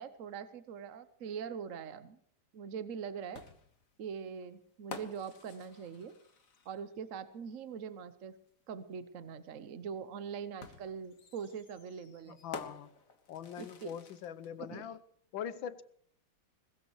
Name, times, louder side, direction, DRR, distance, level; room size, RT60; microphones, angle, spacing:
voice 1, 0.0-2.2 2.5-3.4 4.0-6.1 6.7-8.3 8.7-12.4 13.6-13.9 14.6-14.9, right 7 dB, 55° right, 12 dB, 0.9 m, -42 dB
sound 1, 3.3-7.0 8.5-8.6 10.6-14.5, left 4 dB, 45° left, 1.8 m, -50 dB
voice 2, 12.2-12.9 13.3-15.0 15.3-15.8, left 9 dB, 75° left, 15 dB, 1.5 m, -42 dB
21.5 x 20.5 x 3.1 m, 0.64 s
omnidirectional pair, 2.2 m